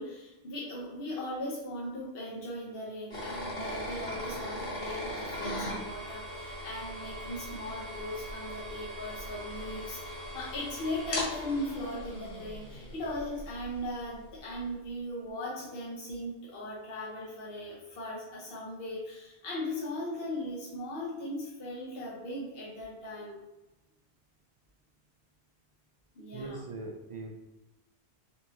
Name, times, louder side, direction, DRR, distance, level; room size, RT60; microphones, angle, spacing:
voice 1, 0.0-23.4 26.2-26.6, left 1 dB, 60° left, -5 dB, 1.0 m, -38 dB
sound 1, 3.1-13.9, equal, 45° left, 1.5 m, -39 dB
voice 2, 26.3-27.3, right 2 dB, 55° right, 2 dB, 0.3 m, -40 dB
4.1 x 3.6 x 2.8 m, 1.0 s
omnidirectional pair, 1.1 m